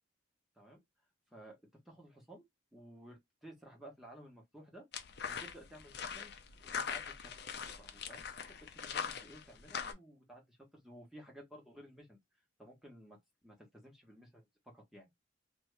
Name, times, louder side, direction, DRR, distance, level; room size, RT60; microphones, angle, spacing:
voice 1, 1.8-2.4 2.7-4.8 5.3-6.3 6.6-8.2 8.7-12.2 12.6-13.2 13.4-15.1, right 1 dB, ahead, 1.1 m, -55 dB
sound 1, 4.9-9.9, left 6 dB, 55° left, 0.6 m, -42 dB
2.8 x 2.6 x 3.2 m
head